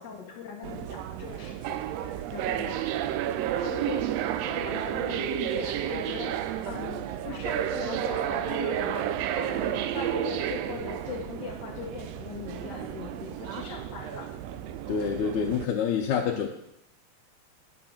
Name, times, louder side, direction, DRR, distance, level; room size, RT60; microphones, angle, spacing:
voice 1, 0.0-2.8 3.6-4.1 4.4-14.3 16.2-16.5, left 6 dB, 60° left, -2 dB, 1.2 m, -40 dB
sound 1, 0.6-15.7, right 11 dB, 80° right, 1.5 m, -31 dB
voice 2, 14.9-16.5, left 7 dB, 90° left, -1 dB, 2.2 m, -27 dB
9.6 x 5.2 x 5.8 m, 0.80 s
omnidirectional pair, 3.3 m